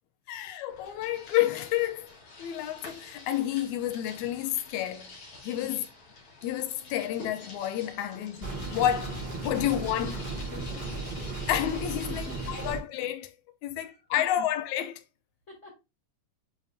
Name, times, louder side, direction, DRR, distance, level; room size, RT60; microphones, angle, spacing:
voice 1, 0.3-2.1 2.4-5.1 5.4-5.8 6.4-10.3 11.5-13.3 13.6-15.0, left 12 dB, 80° left, 2.1 m, -30 dB
sound 1, 0.7-12.7, left 3 dB, 50° left, 2.8 m, -48 dB
sound 2, 8.4-12.8, right 3 dB, 35° right, 0.9 m, -35 dB
voice 2, 10.5-11.0 12.1-12.5 13.7-14.2 15.5-15.7, left 2 dB, 25° left, 2.2 m, -47 dB
9.5 x 3.8 x 2.8 m
omnidirectional pair, 3.4 m